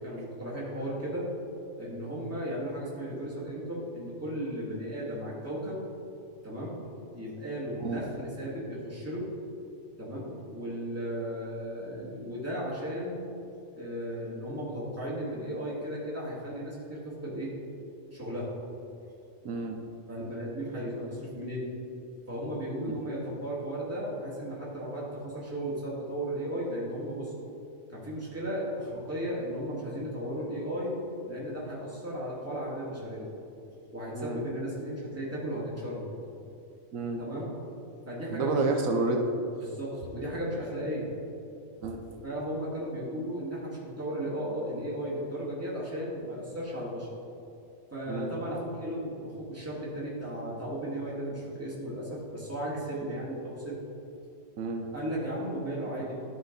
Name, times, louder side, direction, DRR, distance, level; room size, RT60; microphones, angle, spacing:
voice 1, 0.0-1.3 1.8-5.8 6.4-6.8 7.1-9.3 10.0-13.2 13.7-17.5 18.1-18.5 20.1-21.7 22.3-27.3 27.9-30.9 31.3-33.3 33.9-36.1 37.2-37.5 38.1-38.7 39.6-41.1 42.2-47.1 47.9-53.8 54.9-56.1, equal, 10° right, -7 dB, 1.9 m, -35 dB
voice 2, 19.4-19.8 34.1-34.4 36.9-37.2 38.3-39.3 41.8-42.0 48.1-48.3 54.6-54.9, right 3 dB, 85° right, 3 dB, 1.1 m, -30 dB
12.0 x 4.5 x 3.9 m, 2.7 s
omnidirectional pair, 1.4 m